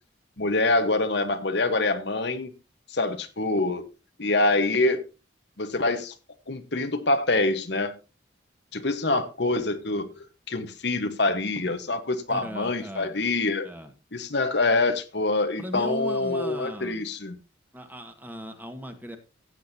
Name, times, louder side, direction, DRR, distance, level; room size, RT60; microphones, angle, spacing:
voice 1, 0.4-2.5 2.9-3.8 4.2-5.0 5.6-6.1 6.5-8.0 8.7-13.7 14.1-17.3, left 2 dB, 60° left, 1.2 m, -25 dB
voice 2, 12.3-13.2 13.6-13.9 15.6-17.1 17.7-19.2, equal, 10° right, 1.5 m, -38 dB
16.0 x 8.7 x 2.8 m
head